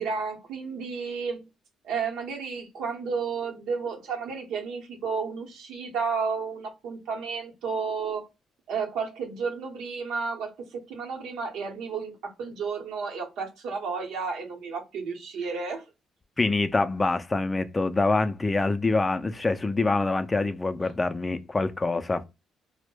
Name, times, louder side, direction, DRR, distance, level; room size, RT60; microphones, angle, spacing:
voice 1, 0.0-1.4 1.8-8.3 8.7-15.8, right 5 dB, 85° right, 0.8 m, -32 dB
voice 2, 16.4-22.2, left 3 dB, 20° left, 0.3 m, -25 dB
2.2 x 2.0 x 3.0 m
cardioid pair, 90°, 0 cm